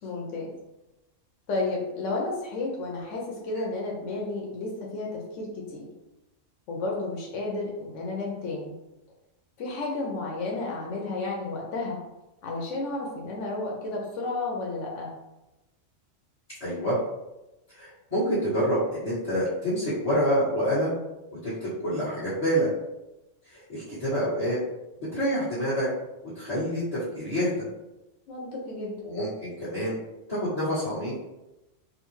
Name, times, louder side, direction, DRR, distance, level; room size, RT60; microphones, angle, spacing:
voice 1, 0.0-0.5 1.5-5.9 6.7-8.8 9.6-12.0 12.4-15.1 28.3-28.9, left 2 dB, 75° left, -2 dB, 1.0 m, -32 dB
voice 2, 16.6-17.0 17.8-21.0 21.4-22.7 23.5-24.6 25.1-25.9 26.3-27.6 29.0-30.0 30.3-31.3, equal, 30° left, -14 dB, 1.4 m, -27 dB
3.9 x 2.0 x 3.0 m, 0.97 s
omnidirectional pair, 1.3 m